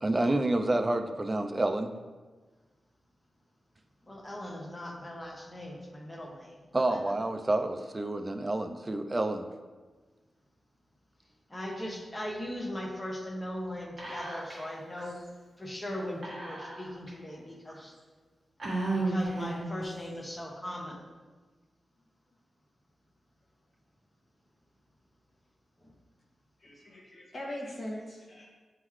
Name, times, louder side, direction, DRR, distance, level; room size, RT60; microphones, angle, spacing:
voice 1, 0.0-2.0 6.7-9.5, right 2 dB, 25° right, 7 dB, 0.4 m, -29 dB
voice 2, 4.1-7.0 11.5-15.2 15.6-17.9 18.9-21.0 25.8-25.9, left 1 dB, 15° left, -1 dB, 1.0 m, -39 dB
Whispering, 14.0-14.7 15.0-15.1 16.2-17.1 17.7-17.8 18.6-19.8, right 2 dB, 40° right, 1.7 m, -34 dB
voice 3, 26.6-28.5, left 1 dB, 40° left, -3 dB, 1.6 m, -41 dB
9.6 x 3.8 x 3.1 m, 1.4 s
wide cardioid pair, 135°, 0 cm